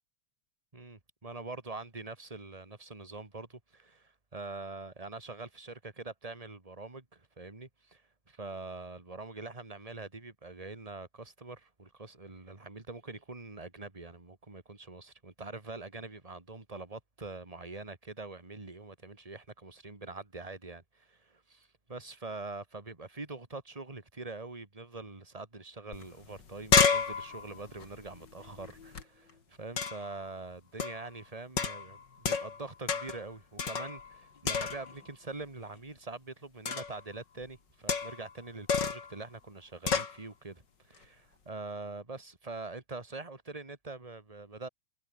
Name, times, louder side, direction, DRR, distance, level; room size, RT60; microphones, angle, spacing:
voice 1, 0.7-8.0 8.3-44.7, right 3 dB, 10° right, 2.3 m, -44 dB
sound 1, 25.9-26.0 26.3-29.0 29.8-30.1 30.8-31.1 31.6-32.6 32.9-33.2 33.6-34.2 34.4-35.0 36.6-37.0 37.9-38.3 38.7-39.1 39.9-40.2, left 6 dB, 40° left, 2.6 m, -30 dB
omnidirectional pair, 3.5 m